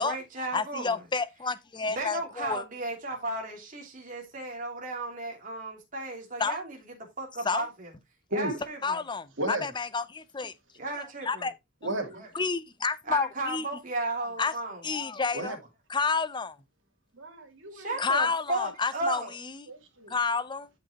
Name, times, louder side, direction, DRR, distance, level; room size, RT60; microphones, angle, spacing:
voice 1, 0.0-1.0 1.9-6.8 7.2-7.9 8.3-9.0 10.8-11.5 12.1-12.3 13.1-14.8 17.7-19.3, right 2 dB, 40° right, 2.9 m, -34 dB
voice 2, 0.5-2.6 6.4-6.6 7.4-7.6 8.8-10.5 11.3-11.5 12.3-13.7 14.4-14.5 14.8-15.6 15.9-16.6 18.0-19.7 20.1-20.7, left 4 dB, 25° left, 0.6 m, -30 dB
voice 3, 9.4-9.7 11.8-12.2 15.3-15.6 17.1-18.1 18.5-18.6 19.0-19.1 19.7-20.2, right 1 dB, 65° right, 2.8 m, -34 dB
12.0 x 5.4 x 2.9 m
head